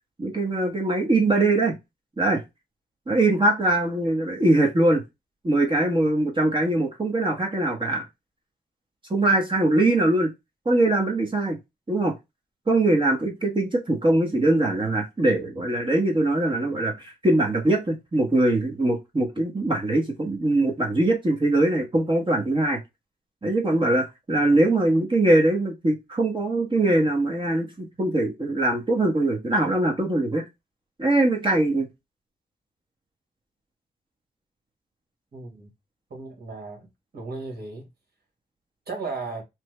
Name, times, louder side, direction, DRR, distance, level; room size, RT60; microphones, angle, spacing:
voice 1, 0.2-1.8 2.2-2.4 3.1-5.0 5.4-8.0 9.1-10.3 10.6-11.6 11.9-12.1 12.7-22.8 23.4-30.4 31.0-31.9, right 2 dB, 25° right, 1.1 m, -22 dB
voice 2, 35.3-35.7 36.1-36.9 37.1-37.9 38.9-39.4, right 3 dB, 60° right, 1.6 m, -35 dB
3.1 x 2.2 x 3.1 m
supercardioid pair, 50°, 18 cm